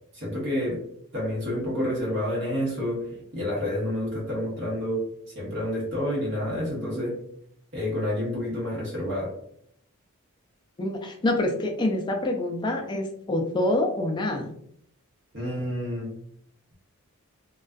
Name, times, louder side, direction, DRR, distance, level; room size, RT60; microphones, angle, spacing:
voice 1, 0.1-0.8 1.1-5.0 5.3-7.2 7.7-9.3 15.3-16.1, left 1 dB, 55° right, -4 dB, 1.0 m, -29 dB
voice 2, 10.8-14.6, left 1 dB, 20° left, 2 dB, 0.3 m, -26 dB
2.4 x 2.3 x 2.2 m, 0.68 s
head